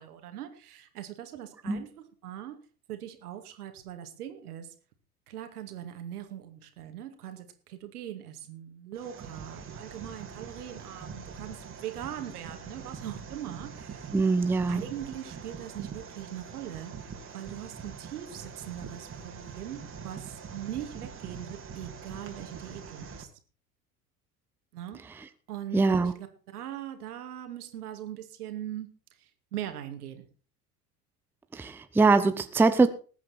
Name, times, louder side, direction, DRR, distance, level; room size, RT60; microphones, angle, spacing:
voice 1, 0.0-2.6 2.9-4.7 5.3-14.1 14.7-23.3 24.7-25.0 25.5-28.9 29.2-30.3, right 11 dB, 65° right, 2.3 m, -41 dB
sound 1, 8.9-23.2, right 6 dB, 25° right, 2.6 m, -43 dB
voice 2, 14.1-14.8 25.7-26.1 31.5-32.9, right 3 dB, 5° right, 0.7 m, -23 dB
19.5 x 8.8 x 4.3 m
figure-of-eight pair, 75°, 48 cm